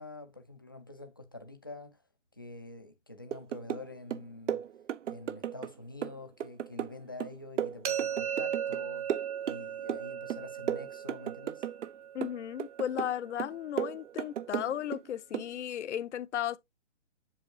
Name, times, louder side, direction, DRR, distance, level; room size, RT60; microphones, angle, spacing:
voice 1, 0.0-2.0 2.3-4.7 5.1-9.2 9.5-11.7, left 2 dB, 20° left, 0.3 m, -46 dB
sound 1, 3.3-3.9 4.1-5.7 6.0-8.8 9.1-10.0 10.3-11.9 12.2-13.1 13.4-15.0 15.3-15.5, right 9 dB, 75° right, 0.7 m, -35 dB
sound 2, 7.8-13.7, right 9 dB, 30° right, 0.8 m, -37 dB
voice 2, 12.1-16.6, left 10 dB, 70° left, 0.7 m, -35 dB
7.7 x 5.5 x 2.8 m
hypercardioid pair, 160°, 36 cm